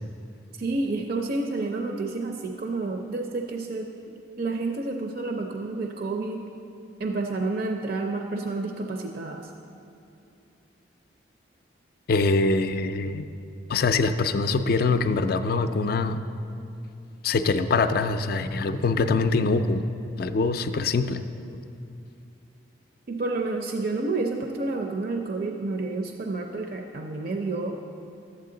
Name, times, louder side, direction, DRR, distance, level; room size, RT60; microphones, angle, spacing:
voice 1, 0.5-3.9 4.4-6.4 7.0-9.4 23.1-27.8, right 3 dB, 50° right, 3 dB, 0.5 m, -29 dB
voice 2, 12.1-13.3 13.7-16.2 17.2-19.8 20.2-21.2, left 3 dB, 50° left, 10 dB, 0.4 m, -24 dB
12.0 x 8.5 x 3.8 m, 2.6 s
head